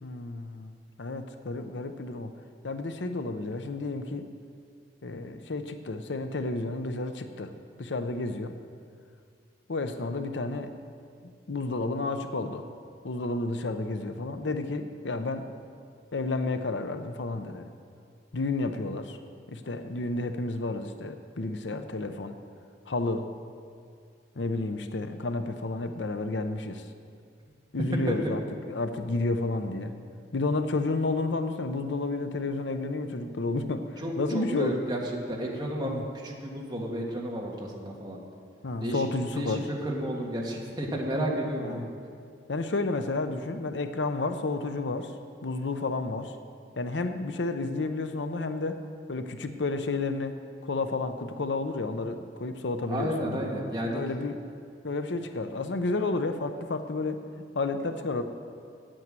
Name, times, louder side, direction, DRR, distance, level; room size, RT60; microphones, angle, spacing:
voice 1, 0.0-2.3 2.6-4.3 5.0-7.5 7.8-8.5 9.7-10.7 11.2-12.7 13.0-15.5 16.1-17.7 18.3-19.2 19.5-22.4 22.9-23.3 24.4-26.8 27.7-28.4 28.7-29.9 30.3-34.8 35.8-36.0 38.6-39.6 41.6-41.9 42.5-45.1 45.4-46.4 46.8-48.8 49.1-50.4 50.6-53.5 53.9-54.4 54.8-57.2 57.5-58.2, left 3 dB, 80° left, 8 dB, 0.7 m, -31 dB
voice 2, 34.0-35.0 35.3-38.2 38.8-39.1 39.4-41.9 52.9-54.0, right 1 dB, 25° right, -2 dB, 1.7 m, -32 dB
9.3 x 8.9 x 7.6 m, 2.3 s
head